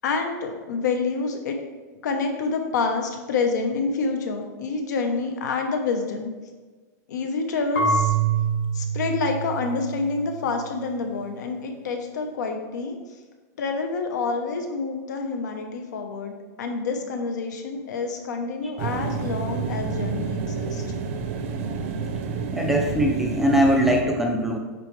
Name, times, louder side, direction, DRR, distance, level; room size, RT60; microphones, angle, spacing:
voice 1, 0.0-1.6 2.0-6.3 7.1-8.1 8.7-13.0 13.6-20.8, left 4 dB, 75° left, 4 dB, 1.1 m, -27 dB
Marimba xylophone / Wood, 7.8-10.6, right 5 dB, 50° left, 1.4 m, -25 dB
sound 1, 18.8-24.0, right 5 dB, 45° right, 0.7 m, -29 dB
voice 2, 22.5-24.6, equal, 5° right, 1 dB, 0.4 m, -21 dB
8.1 x 4.5 x 3.3 m, 1.3 s
supercardioid pair, 170°, 10 cm